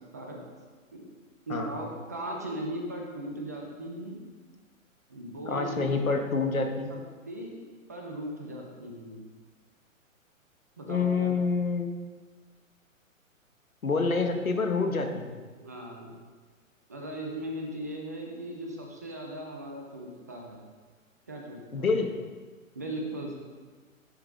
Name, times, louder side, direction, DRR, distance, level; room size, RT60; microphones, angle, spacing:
voice 1, 1.5-4.2 5.1-6.1 6.9-7.0 7.2-7.6 7.9-9.2 10.8-11.5 15.6-16.1 16.9-20.6 21.3-21.9 22.7-23.3, right 1 dB, 15° right, 0 dB, 0.3 m, -38 dB
voice 2, 5.5-6.9 10.9-11.9 13.8-15.3 21.7-22.2, left 4 dB, 85° left, 5 dB, 1.1 m, -27 dB
10.5 x 4.9 x 3.6 m, 1.4 s
figure-of-eight pair, 120°, 41 cm